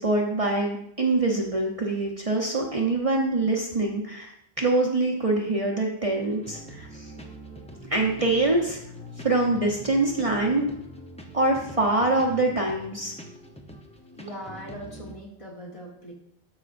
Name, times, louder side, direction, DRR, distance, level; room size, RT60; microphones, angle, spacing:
voice 1, 0.0-4.3 4.6-7.1 7.9-8.8 9.2-10.7 11.3-13.1, right 2 dB, 35° right, 0 dB, 0.9 m, -24 dB
sound 1, 6.2-15.2, equal, 5° left, 0.6 m, -44 dB
voice 2, 14.1-16.1, equal, 35° left, -3 dB, 1.5 m, -40 dB
13.0 x 4.9 x 2.5 m, 0.73 s
omnidirectional pair, 1.0 m